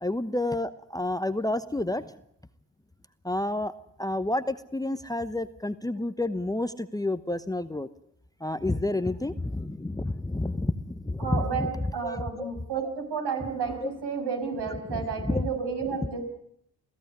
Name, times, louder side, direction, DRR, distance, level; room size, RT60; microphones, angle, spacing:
voice 1, 0.0-2.1 3.2-3.7 4.0-7.9 8.4-12.5 12.8-12.9 13.8-13.9 14.9-15.5, left 2 dB, 10° left, 13 dB, 1.0 m, -30 dB
voice 2, 11.2-16.3, right 5 dB, 65° right, 4 dB, 6.2 m, -31 dB
23.0 x 15.5 x 9.7 m, 0.73 s
hypercardioid pair, 50°, 42 cm